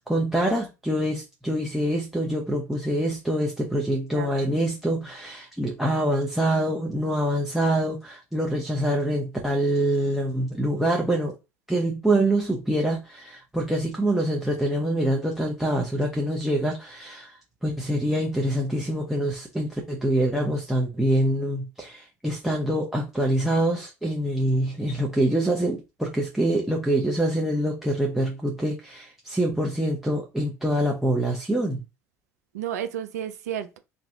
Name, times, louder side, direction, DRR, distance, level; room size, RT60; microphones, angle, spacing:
voice 1, 0.0-11.3 11.7-31.8, right 1 dB, 5° right, 0.8 m, -25 dB
voice 2, 4.1-4.6 32.5-33.8, right 9 dB, 80° right, 0.5 m, -32 dB
2.7 x 2.3 x 3.2 m
hypercardioid pair, 70°, 9 cm